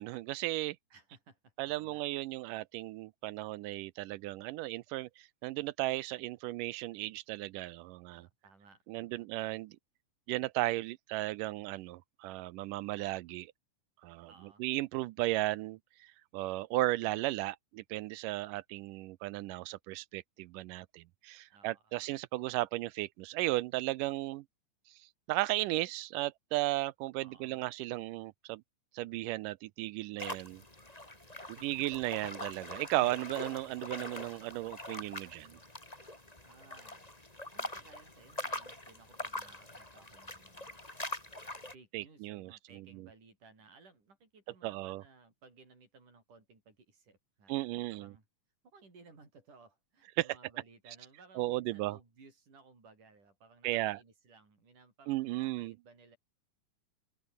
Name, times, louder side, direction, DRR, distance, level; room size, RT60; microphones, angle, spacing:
voice 1, 0.0-0.8 1.6-8.3 8.9-9.8 10.3-13.5 14.0-14.3 14.6-24.5 24.9-25.0 25.3-28.6 28.9-30.6 31.6-35.6 41.9-43.1 44.6-45.0 47.5-48.1 50.2-50.3 51.4-52.0 53.6-54.0 55.1-55.8, right 18 dB, 80° right, 2.1 m, -35 dB
voice 2, 0.9-2.0 8.1-9.3 14.3-14.6 21.5-22.1 27.2-27.7 31.3-31.7 36.4-37.1 37.5-41.1 41.7-48.2 48.6-56.2, right 4 dB, 65° right, 9.1 m, -60 dB
sound 1, 30.2-41.7, left 1 dB, 10° left, 3.8 m, -44 dB
open air
omnidirectional pair, 3.9 m